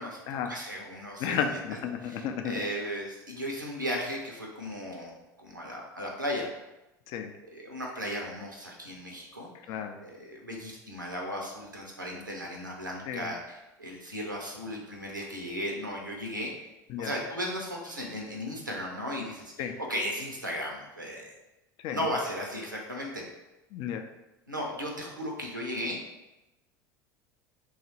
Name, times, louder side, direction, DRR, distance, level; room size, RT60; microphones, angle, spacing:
voice 1, 0.0-1.6 2.0-6.5 7.5-16.5 17.0-21.3 21.9-23.2 24.5-26.0, equal, 90° right, 0 dB, 0.6 m, -36 dB
voice 2, 1.2-2.6 7.1-7.3 9.7-10.0 13.1-13.3 16.9-17.1 19.6-19.7 21.8-22.0 23.7-24.0, left 8 dB, 45° left, 6 dB, 0.4 m, -32 dB
2.9 x 2.4 x 4.2 m, 0.98 s
figure-of-eight pair, 70°, 10 cm